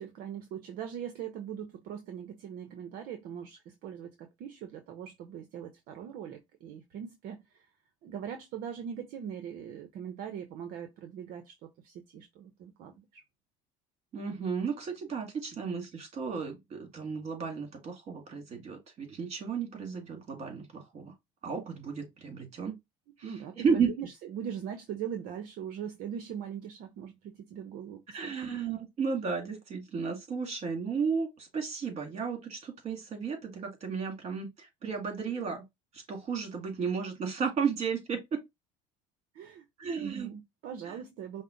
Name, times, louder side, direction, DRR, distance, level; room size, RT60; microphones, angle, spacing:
voice 1, 0.0-7.6 8.0-13.2 23.2-28.5 39.3-39.6 39.9-41.4, right 8 dB, 60° right, 0.8 m, -41 dB
voice 2, 14.1-21.1 21.4-22.7 23.2-23.3 23.6-23.9 28.1-35.6 35.9-38.4 39.8-40.3 40.8-40.9, right 5 dB, 40° right, 2.2 m, -33 dB
5.4 x 2.1 x 3.9 m
cardioid pair, 115°, 16 cm